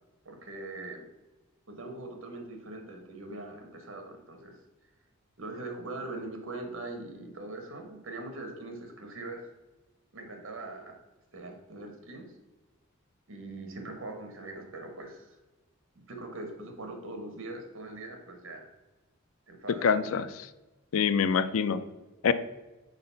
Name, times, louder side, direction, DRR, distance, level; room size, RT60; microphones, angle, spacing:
voice 1, 0.2-1.1 1.7-4.6 5.4-9.4 10.1-11.0 11.3-12.2 13.3-15.4 15.9-18.7 19.5-20.0, right 2 dB, 70° right, 4 dB, 1.2 m, -41 dB
voice 2, 19.8-20.5 20.9-21.8 22.2-22.3, left 6 dB, 85° left, 13 dB, 0.4 m, -25 dB
4.3 x 3.9 x 5.5 m, 1.1 s
head